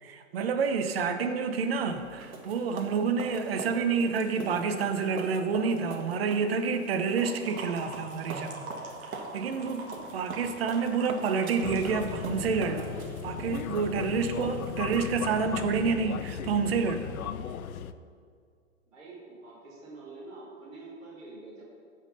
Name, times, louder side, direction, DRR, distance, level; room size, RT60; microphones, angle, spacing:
voice 1, 0.0-8.7 9.3-12.9 13.2-17.2, right 5 dB, 45° right, 7 dB, 1.0 m, -28 dB
sound 1, 1.7-15.4, right 4 dB, 80° right, 1.6 m, -43 dB
sound 2, 7.1-12.2, right 2 dB, 20° right, 1.2 m, -45 dB
voice 2, 9.7-10.7 18.8-21.7, right 2 dB, ahead, -15 dB, 0.4 m, -47 dB
sound 3, 11.6-17.9, left 8 dB, 80° left, 0.7 m, -37 dB
15.0 x 5.6 x 5.5 m, 2.2 s
hypercardioid pair, 155°, 42 cm